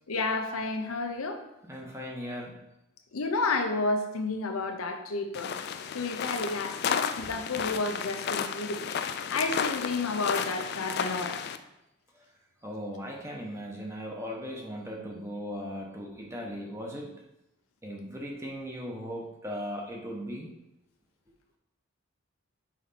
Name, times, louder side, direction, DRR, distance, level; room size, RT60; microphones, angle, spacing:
voice 1, 0.1-1.4 3.1-5.6 5.9-8.8 9.3-11.4, left 3 dB, 85° left, 6 dB, 0.7 m, -31 dB
voice 2, 1.6-2.6 12.1-12.2 12.6-17.1 17.8-20.5, equal, 15° right, -1 dB, 0.9 m, -38 dB
sound 1, 5.3-11.6, left 7 dB, 50° left, 0.3 m, -33 dB
5.8 x 4.1 x 4.1 m, 0.87 s
head